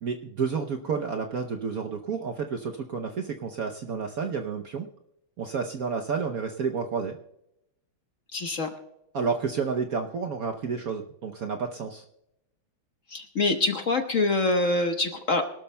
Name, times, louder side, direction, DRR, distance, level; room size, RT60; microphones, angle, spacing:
voice 1, 0.0-4.9 5.4-7.2 9.1-12.0, right 5 dB, 60° right, 4 dB, 1.0 m, -30 dB
voice 2, 8.3-8.7 13.1-15.4, left 2 dB, 45° left, 5 dB, 1.3 m, -25 dB
24.0 x 12.5 x 2.2 m, 0.84 s
omnidirectional pair, 2.2 m